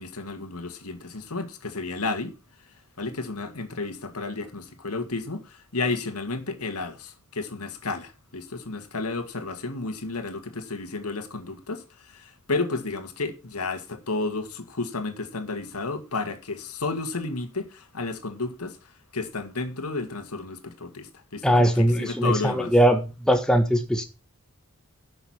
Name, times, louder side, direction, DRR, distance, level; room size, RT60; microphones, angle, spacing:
voice 1, 0.0-2.3 3.0-18.8 19.1-21.7 22.0-22.7, left 3 dB, 90° left, 2.1 m, -32 dB
voice 2, 21.4-24.0, equal, 5° left, 1.3 m, -20 dB
11.5 x 6.6 x 5.9 m
head